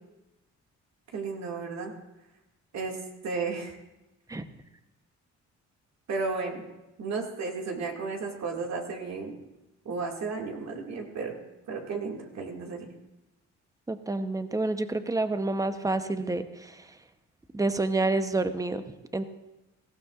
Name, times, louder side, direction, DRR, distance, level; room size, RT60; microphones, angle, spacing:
voice 1, 1.1-1.9 2.7-3.0 3.2-3.8 6.1-6.6 7.0-9.4 9.9-11.4 11.7-12.9, right 4 dB, 65° right, 1 dB, 2.2 m, -33 dB
voice 2, 13.9-17.0 17.5-19.2, right 2 dB, 10° right, 10 dB, 0.8 m, -29 dB
18.0 x 14.5 x 2.4 m, 0.98 s
cardioid pair, 90°, 30 cm